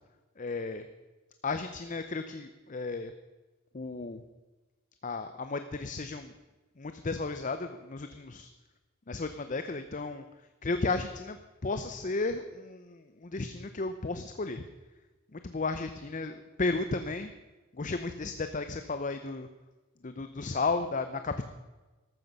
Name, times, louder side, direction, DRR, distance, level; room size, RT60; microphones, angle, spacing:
voice 1, 0.4-0.8 1.4-3.1 3.7-4.2 5.0-6.3 6.8-8.5 9.1-10.2 10.6-14.7 15.3-17.3 17.7-19.5 20.0-21.5, left 3 dB, 40° left, 9 dB, 0.6 m, -34 dB
14.0 x 12.5 x 5.5 m, 1.2 s
head